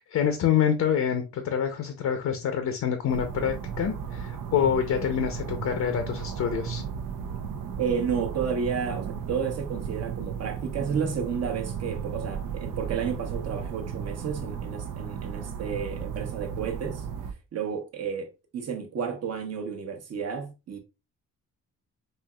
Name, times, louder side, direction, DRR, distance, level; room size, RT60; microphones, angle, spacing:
voice 1, 0.1-6.8, left 8 dB, 60° left, 0.7 m, -26 dB
sound 1, 3.1-17.3, right 7 dB, 75° right, 0.6 m, -35 dB
voice 2, 7.8-17.0 17.5-20.8, right 6 dB, 55° right, 0.9 m, -31 dB
4.4 x 2.8 x 2.3 m
cardioid pair, 120°, 31 cm